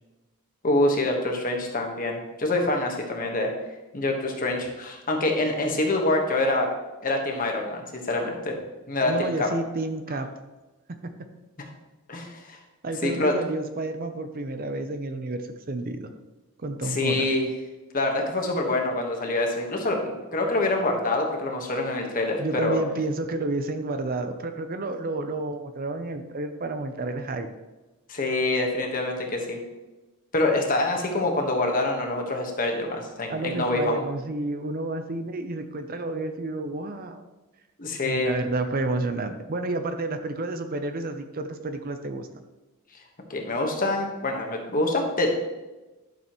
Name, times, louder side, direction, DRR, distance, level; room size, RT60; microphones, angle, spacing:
voice 1, 0.6-3.5 3.9-6.7 7.0-8.6 8.9-9.5 11.6-11.7 12.1-12.6 13.0-13.3 16.8-17.5 17.9-22.8 28.1-29.6 30.3-34.0 37.8-38.3 43.3-45.4, left 2 dB, 40° left, 2 dB, 1.3 m, -26 dB
voice 2, 9.0-10.3 11.0-11.1 12.8-16.1 16.6-17.2 22.4-27.5 33.3-37.2 38.0-42.3, right 2 dB, 40° right, 8 dB, 0.6 m, -30 dB
11.5 x 6.6 x 3.0 m, 1.1 s
head